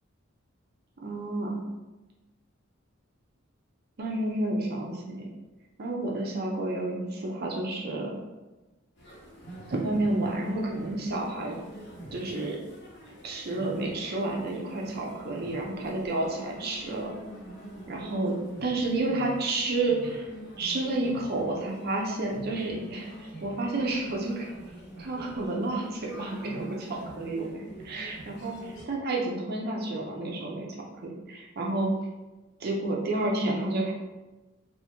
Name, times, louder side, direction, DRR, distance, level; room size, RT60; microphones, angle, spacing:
voice 1, 1.0-1.6 4.0-5.3 5.8-8.1 9.7-11.6 12.1-12.6 13.2-17.1 17.9-20.3 20.6-24.5 25.0-30.8 31.3-31.9 32.6-33.9, right 2 dB, 50° right, -1 dB, 0.5 m, -30 dB
sound 1, 9.0-28.8, equal, 55° left, 1.0 m, -45 dB
3.4 x 2.5 x 2.9 m, 1.1 s
head